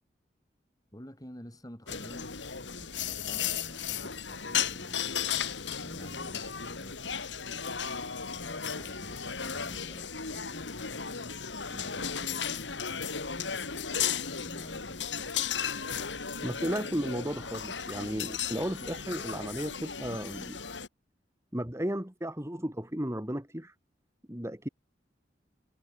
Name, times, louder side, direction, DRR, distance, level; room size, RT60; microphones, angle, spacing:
voice 1, 0.9-2.3 2.6-7.0 8.3-11.4 11.7-14.0 14.3-15.3, equal, 20° left, 7.7 m, -50 dB
sound 1, 1.9-20.9, left 7 dB, 90° left, 3.4 m, -35 dB
voice 2, 16.4-20.6 21.5-23.7 24.3-24.7, equal, 15° right, 2.9 m, -34 dB
head